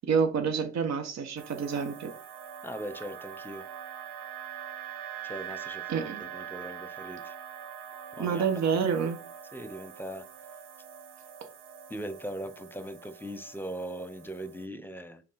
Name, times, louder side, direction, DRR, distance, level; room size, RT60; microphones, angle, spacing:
voice 1, 0.0-2.1 5.9-6.2 8.2-9.2, right 6 dB, 60° right, 6 dB, 1.4 m, -28 dB
sound 1, 1.4-14.7, right 9 dB, 85° right, 0.9 m, -44 dB
voice 2, 2.6-3.7 5.2-7.3 8.2-8.4 9.5-10.3 11.9-15.2, equal, 5° left, 11 dB, 0.9 m, -40 dB
5.2 x 3.9 x 5.7 m, 0.35 s
cardioid pair, 90°, 30 cm